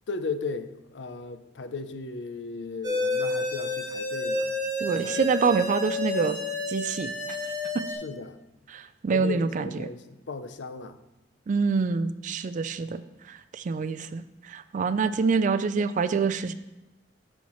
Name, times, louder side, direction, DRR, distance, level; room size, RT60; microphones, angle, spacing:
voice 1, 0.1-4.5 4.8-5.7 8.0-8.4 9.1-11.0 14.9-15.0, left 4 dB, 80° left, 10 dB, 0.5 m, -36 dB
sound 1, 2.8-7.9, left 2 dB, 20° right, 1.6 m, -30 dB
voice 2, 4.8-6.4 6.7-7.1 7.7-7.8 8.7-9.7 11.5-13.0 13.3-16.5, right 5 dB, 45° right, 12 dB, 0.3 m, -26 dB
12.5 x 4.4 x 3.1 m, 0.98 s
head